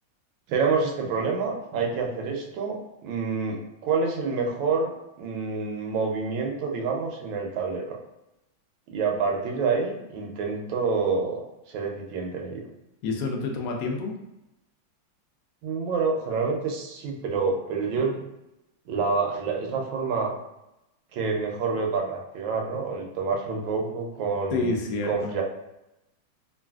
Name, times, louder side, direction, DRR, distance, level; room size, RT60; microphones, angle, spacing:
voice 1, 0.5-4.9 5.2-8.0 8.9-12.7 15.6-18.2 18.9-20.3 21.1-24.7 25.1-25.4, right 4 dB, 75° right, 1 dB, 1.2 m, -27 dB
voice 2, 13.0-14.1 24.5-25.3, left 3 dB, 75° left, 1 dB, 0.9 m, -28 dB
3.1 x 2.5 x 2.3 m, 0.91 s
omnidirectional pair, 2.3 m